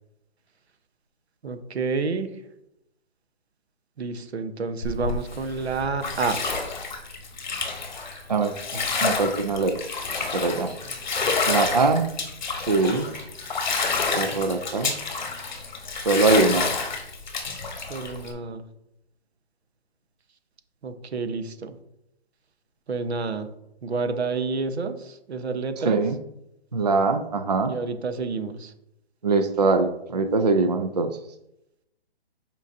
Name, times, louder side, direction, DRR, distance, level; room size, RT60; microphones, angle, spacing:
voice 1, 1.4-2.3 4.0-6.5 12.9-13.1 17.9-18.6 20.8-21.7 22.9-23.5 23.8-26.0 27.7-28.7, right 4 dB, 85° right, 9 dB, 1.0 m, -29 dB
Bathtub (filling or washing), 4.8-18.3, left 4 dB, 45° left, 1.1 m, -29 dB
voice 2, 8.3-9.8 10.3-10.7 11.5-12.1 12.6-13.1 14.1-14.9 16.0-16.7 25.8-26.2 26.7-27.7 29.2-31.1, right 3 dB, 40° right, 7 dB, 0.4 m, -22 dB
7.5 x 5.1 x 2.7 m, 0.84 s
hypercardioid pair, 180°, 32 cm